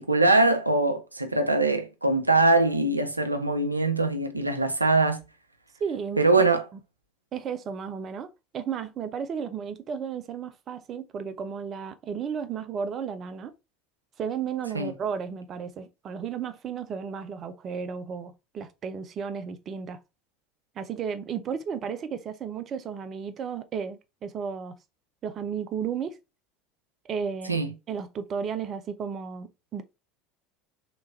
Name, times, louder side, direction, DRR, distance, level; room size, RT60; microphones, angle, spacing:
voice 1, 0.0-5.2 6.2-6.6 14.7-14.9 27.5-27.7, right 2 dB, 85° right, 0.5 m, -22 dB
voice 2, 5.8-6.2 7.3-8.3 8.5-13.5 14.2-20.0 20.8-24.8 25.2-26.1 27.0-27.6 27.9-29.8, right 7 dB, 35° right, 0.5 m, -33 dB
3.3 x 3.0 x 2.7 m
figure-of-eight pair, 70°, 0 cm